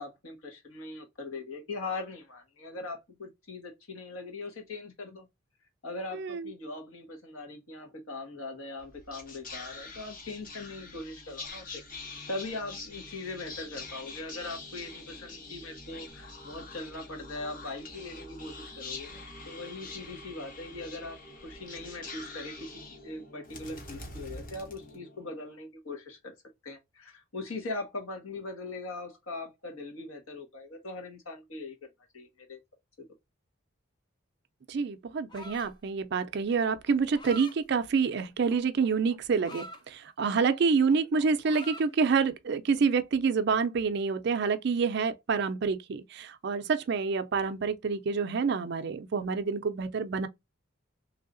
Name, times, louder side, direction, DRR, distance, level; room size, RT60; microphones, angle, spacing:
voice 1, 0.0-5.3 5.8-11.8 12.3-22.7 23.0-26.3 26.6-31.8 32.1-32.6 33.0-33.1, left 2 dB, 85° left, 1.3 m, -40 dB
voice 2, 6.1-6.5 34.7-50.3, right 5 dB, 50° right, 0.4 m, -27 dB
Whispering, 8.8-25.4, left 3 dB, 40° left, 0.9 m, -45 dB
sound 1, 35.3-35.8 36.9-37.6 38.5-39.8 40.3-40.6 40.8-41.9, left 1 dB, 20° left, 0.4 m, -45 dB
3.2 x 2.7 x 2.5 m
head